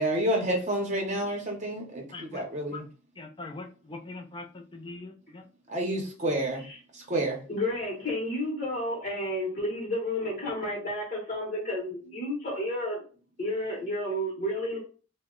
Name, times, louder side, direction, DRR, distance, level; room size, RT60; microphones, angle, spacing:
voice 1, 0.0-2.9 5.7-6.7 6.9-7.4, right 1 dB, 35° right, 0.7 m, -29 dB
voice 2, 2.1-2.4 2.7-2.8 3.2-4.4 4.7-5.4, left 3 dB, 25° left, 0.4 m, -41 dB
voice 3, 7.5-13.0 13.4-14.8, left 1 dB, 40° left, 0.9 m, -31 dB
2.8 x 2.1 x 3.6 m
head